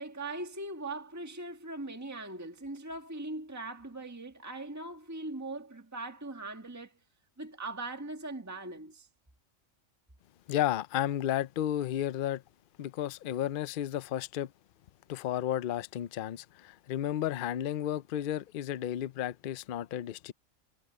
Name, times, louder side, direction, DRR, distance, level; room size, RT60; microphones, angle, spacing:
voice 1, 0.0-6.9 7.4-9.1, right 2 dB, 15° right, 1.7 m, -40 dB
voice 2, 10.5-12.4 12.8-14.5 15.1-20.3, left 11 dB, 60° left, 0.6 m, -32 dB
omnidirectional pair, 1.3 m